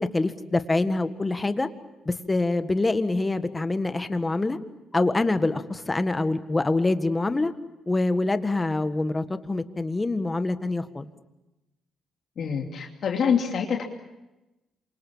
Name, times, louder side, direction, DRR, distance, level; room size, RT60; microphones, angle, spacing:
voice 1, 0.0-1.7 2.0-4.6 4.9-7.5 7.9-11.1, left 2 dB, 20° left, 10 dB, 1.6 m, -25 dB
voice 2, 12.4-13.8, left 7 dB, 60° left, 1 dB, 2.8 m, -25 dB
28.0 x 25.5 x 7.3 m, 1.0 s
cardioid pair, 90°, 0 cm